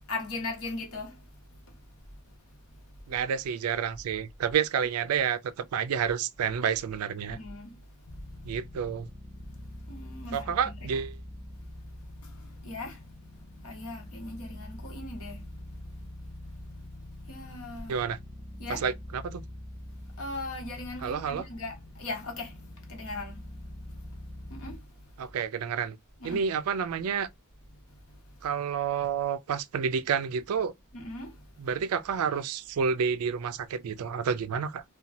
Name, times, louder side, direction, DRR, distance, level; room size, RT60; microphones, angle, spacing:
voice 1, 0.1-1.2 7.3-7.7 9.9-10.7 12.6-13.0 13.6-15.4 17.3-17.9 18.6-18.8 20.2-22.5 22.9-23.4 24.5-24.8 26.2-26.4 30.9-31.3, left 2 dB, 65° left, 1.1 m, -38 dB
voice 2, 3.1-7.4 8.4-9.1 10.3-11.2 17.9-18.2 18.7-19.4 21.0-21.5 25.2-26.0 26.2-27.3 28.4-30.7 31.6-34.8, right 7 dB, 70° right, 0.4 m, -29 dB
sound 1, 8.0-24.8, left 1 dB, 30° left, 0.8 m, -44 dB
2.8 x 2.3 x 2.5 m
head